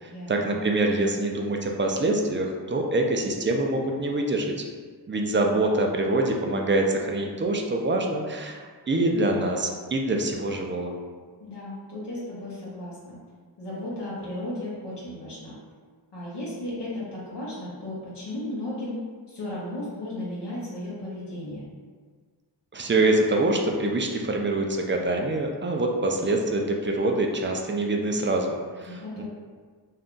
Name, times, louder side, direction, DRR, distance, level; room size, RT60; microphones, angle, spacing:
voice 1, 0.0-4.6 5.1-8.6 8.9-10.9 22.7-29.2, right 2 dB, 30° right, 2 dB, 0.4 m, -25 dB
voice 2, 11.4-13.2 13.6-15.6 16.1-19.0 19.3-21.7 28.9-29.2, left 1 dB, 80° left, -7 dB, 0.8 m, -35 dB
2.6 x 2.2 x 3.6 m, 1.5 s
wide cardioid pair, 70°, 41 cm